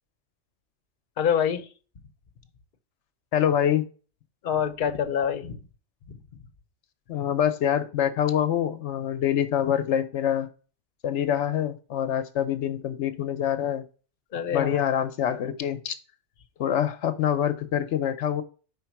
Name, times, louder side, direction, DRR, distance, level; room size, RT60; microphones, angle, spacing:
voice 1, 1.2-1.7 4.4-5.6 6.1-6.2 14.3-14.8, left 8 dB, 50° left, 7 dB, 0.8 m, -26 dB
voice 2, 3.3-3.8 7.1-10.5 11.0-13.8 14.5-15.9 16.6-18.4, left 9 dB, 75° left, 11 dB, 1.0 m, -25 dB
5.2 x 4.1 x 5.7 m, 0.37 s
omnidirectional pair, 1.2 m